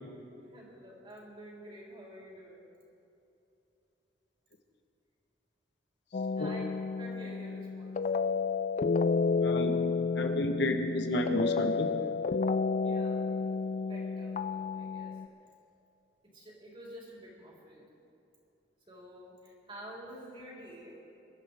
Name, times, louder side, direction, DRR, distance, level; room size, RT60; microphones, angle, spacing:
voice 1, 0.4-2.6 6.3-6.7 6.9-8.1 12.8-13.3 13.7-15.2 16.2-17.9 18.9-21.0, equal, 30° right, -4 dB, 4.0 m, -49 dB
sound 1, 6.1-15.3, left 4 dB, 40° left, 0.4 m, -31 dB
voice 2, 9.4-9.9 10.1-12.0, left 1 dB, 70° left, 4 dB, 1.2 m, -31 dB
24.5 x 12.0 x 3.6 m, 2.8 s
head